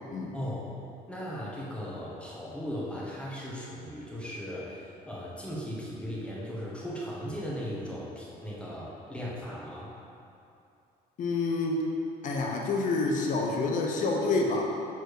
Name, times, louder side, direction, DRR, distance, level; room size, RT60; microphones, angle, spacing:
voice 1, 0.3-0.8 1.1-9.9, equal, 5° left, -6 dB, 1.5 m, -37 dB
voice 2, 11.2-11.8 12.2-14.6, left 3 dB, 50° left, 0 dB, 0.8 m, -28 dB
6.6 x 4.4 x 4.9 m, 2.6 s
cardioid pair, 110°, 17 cm